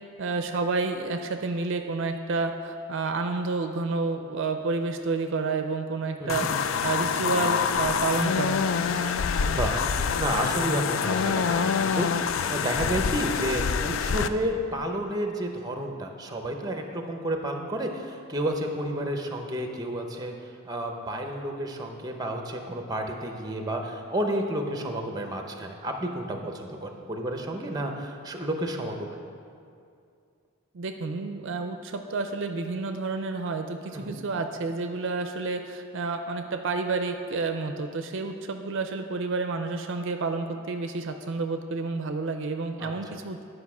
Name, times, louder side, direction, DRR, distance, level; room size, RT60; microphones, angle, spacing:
voice 1, 0.2-8.6 30.7-43.4, right 3 dB, 60° right, 6 dB, 0.5 m, -30 dB
sound 1, 6.3-14.3, left 6 dB, 60° left, 0.3 m, -26 dB
voice 2, 9.5-12.1 12.5-20.3 20.6-29.2 33.9-34.2 42.8-42.9, right 1 dB, 20° right, 4 dB, 0.7 m, -31 dB
10.5 x 5.0 x 6.0 m, 2.4 s
head